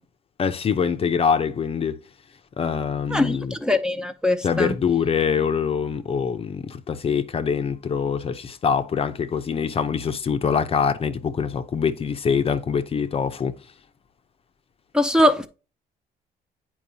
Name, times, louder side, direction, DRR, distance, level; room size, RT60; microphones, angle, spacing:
voice 1, 0.4-2.0 2.6-3.5 4.4-13.5, left 6 dB, 35° left, 0.6 m, -24 dB
voice 2, 3.1-4.7 14.9-15.5, left 1 dB, 5° right, 0.6 m, -21 dB
9.1 x 4.5 x 2.8 m
cardioid pair, 110°, 17 cm